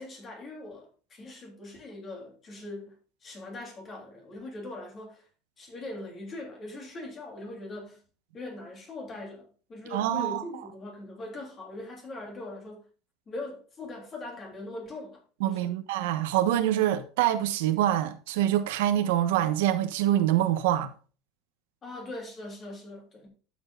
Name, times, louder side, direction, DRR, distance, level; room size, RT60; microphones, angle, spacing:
voice 1, 0.0-2.9 3.2-5.3 5.6-8.0 8.3-12.8 13.3-15.8 21.8-23.3, left 2 dB, 25° left, 3.3 m, -41 dB
voice 2, 9.9-10.4 15.4-20.9, right 12 dB, 90° right, 1.1 m, -25 dB
12.0 x 7.3 x 2.5 m
cardioid pair, 150°, 0 cm